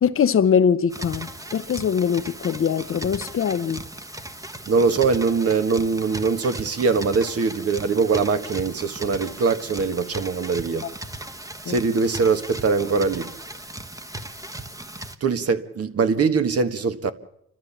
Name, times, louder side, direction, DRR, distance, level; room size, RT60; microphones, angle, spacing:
voice 1, 0.0-3.8 11.7-11.8, left 7 dB, 45° left, 0.8 m, -22 dB
sound 1, 0.9-15.2, right 1 dB, 10° right, 1.2 m, -37 dB
voice 2, 4.7-10.8 11.7-13.3 15.2-17.1, right 4 dB, 50° right, 1.6 m, -22 dB
29.0 x 12.5 x 7.1 m
cardioid pair, 90°, 30 cm